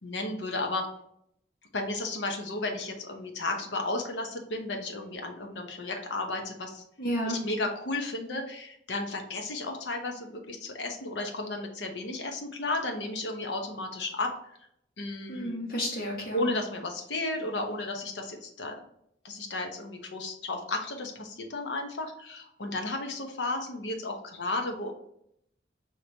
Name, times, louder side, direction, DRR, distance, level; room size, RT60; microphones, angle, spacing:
voice 1, 0.0-0.9 1.7-6.8 7.3-14.3 15.0-15.6 16.3-18.7 19.2-24.9, left 2 dB, 90° left, 3 dB, 0.9 m, -33 dB
voice 2, 7.0-7.4 15.3-16.5, equal, 55° left, -2 dB, 1.4 m, -31 dB
5.1 x 2.9 x 2.8 m, 0.72 s
head